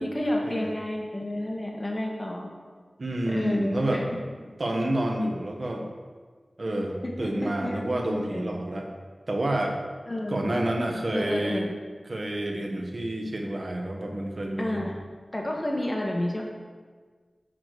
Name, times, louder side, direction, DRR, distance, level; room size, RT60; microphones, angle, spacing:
voice 1, 0.0-2.5 3.3-4.0 7.0-8.6 10.1-10.4 11.1-11.7 14.6-16.5, left 1 dB, 25° left, -1 dB, 1.8 m, -30 dB
voice 2, 3.0-4.0 4.6-5.8 6.6-8.9 9.3-9.8 10.3-11.7 12.1-14.8, right 1 dB, 55° right, 2 dB, 1.3 m, -29 dB
8.9 x 4.2 x 6.6 m, 1.5 s
wide cardioid pair, 55°, 0 cm